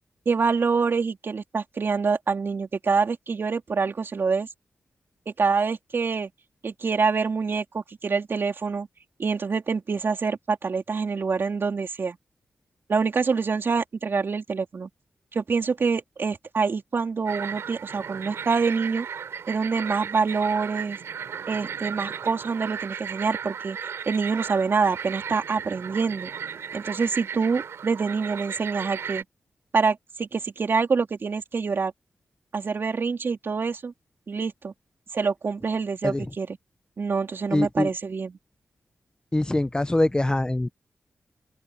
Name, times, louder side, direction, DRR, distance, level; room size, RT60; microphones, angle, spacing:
voice 1, 0.3-4.5 5.3-6.3 6.6-8.9 9.2-12.2 12.9-14.9 15.3-19.1 19.5-21.0 21.5-23.8 24.1-26.3 26.7-29.2 29.7-31.9 32.5-33.9 34.3-34.7 35.1-36.5 37.0-38.3, right 5 dB, 55° right, 4.1 m, -26 dB
sound 1, 17.3-29.2, right 7 dB, 90° right, 4.2 m, -35 dB
voice 2, 37.5-37.9 39.3-40.7, left 1 dB, 20° left, 1.4 m, -23 dB
open air
cardioid pair, 75°, 4 cm